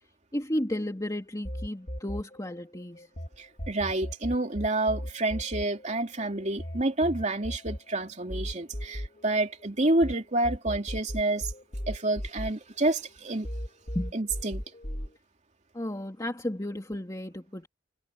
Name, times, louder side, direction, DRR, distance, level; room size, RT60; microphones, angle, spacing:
voice 1, 0.3-3.1 13.9-14.1 15.7-17.7, left 1 dB, 20° left, 2.4 m, -33 dB
sound 1, 1.4-3.3 3.6-10.1 10.4-13.1 13.4-15.1, equal, 40° left, 4.2 m, -36 dB
voice 2, 3.4-11.5 11.9-13.5 14.1-14.6, right 2 dB, 40° right, 3.0 m, -28 dB
head